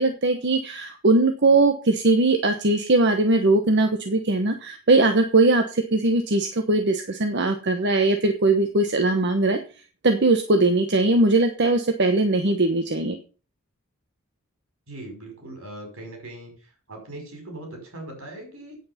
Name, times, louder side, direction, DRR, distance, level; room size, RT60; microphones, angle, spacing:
voice 1, 0.0-9.6 10.0-13.1, right 2 dB, 55° right, 6 dB, 1.1 m, -20 dB
voice 2, 14.9-16.5 16.9-18.8, right 1 dB, 75° right, 3 dB, 5.5 m, -39 dB
9.3 x 8.6 x 5.8 m, 0.37 s
head